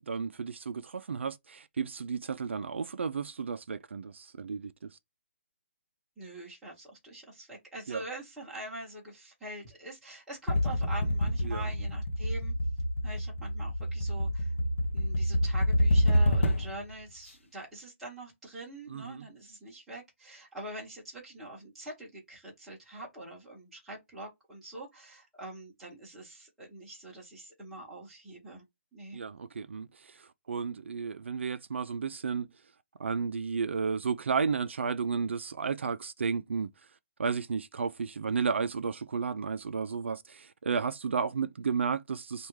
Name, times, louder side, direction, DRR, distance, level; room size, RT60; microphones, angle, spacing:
voice 1, 0.1-5.0 7.9-8.0 11.4-11.7 18.9-19.3 29.1-32.5 33.0-36.7 37.2-42.5, right 5 dB, 65° right, 0.4 m, -33 dB
voice 2, 6.2-12.5 13.0-14.5 14.9-28.6 28.9-29.2, right 1 dB, ahead, 0.9 m, -44 dB
sound 1, 10.5-16.9, equal, 70° left, 0.6 m, -27 dB
3.4 x 2.3 x 3.0 m
hypercardioid pair, 180°, 7 cm